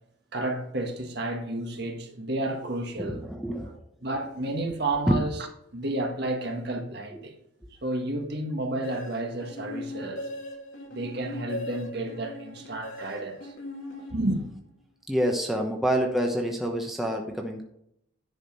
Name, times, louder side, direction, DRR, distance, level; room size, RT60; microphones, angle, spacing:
voice 1, 0.3-3.2 4.0-5.4 5.7-7.3 7.8-10.3 10.9-13.5 14.1-14.4, right 2 dB, 55° right, 1.6 m, -31 dB
voice 2, 3.0-3.8 5.1-5.2 7.1-7.2 15.1-17.7, equal, ahead, 1.0 m, -27 dB
sound 1, 8.8-14.7, left 1 dB, 75° left, 2.1 m, -39 dB
10.5 x 5.1 x 5.3 m
head